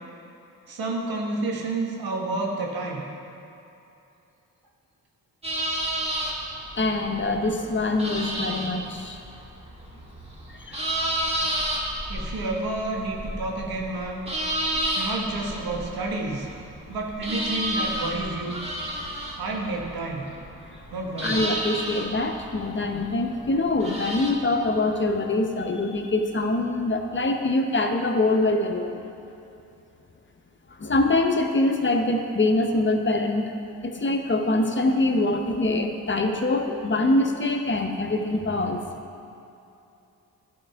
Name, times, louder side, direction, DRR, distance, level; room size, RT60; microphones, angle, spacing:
voice 1, 0.7-3.0 12.1-14.2 15.0-16.5 16.9-18.6 19.4-20.3 20.9-21.4, right 2 dB, 75° right, 0 dB, 1.3 m, -30 dB
sound 1, 5.4-24.3, right 1 dB, 15° right, 1.7 m, -31 dB
voice 2, 6.8-9.2 10.5-11.3 21.2-29.0 30.8-33.6 33.8-38.8, left 2 dB, 30° left, 4 dB, 0.8 m, -24 dB
10.5 x 4.4 x 4.6 m, 2.8 s
supercardioid pair, 45°, 37 cm